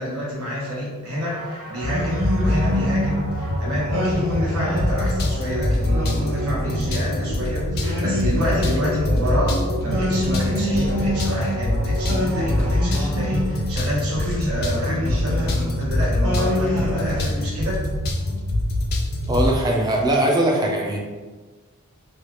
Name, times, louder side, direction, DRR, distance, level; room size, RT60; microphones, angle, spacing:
voice 1, 0.0-17.8, equal, 80° right, -6 dB, 1.2 m, -28 dB
sound 1, 1.2-13.8, equal, 40° right, 1.0 m, -34 dB
sound 2, 1.8-19.6, left 1 dB, 45° left, 0.4 m, -24 dB
Singing, 1.8-3.3 3.9-5.2 5.8-7.2 7.8-9.3 9.9-11.7 12.1-13.7 14.2-15.8 16.2-17.8, left 1 dB, 60° right, 0.7 m, -27 dB
voice 2, 19.3-21.0, right 1 dB, 20° right, -1 dB, 0.4 m, -20 dB
3.1 x 2.3 x 3.0 m, 1.3 s
head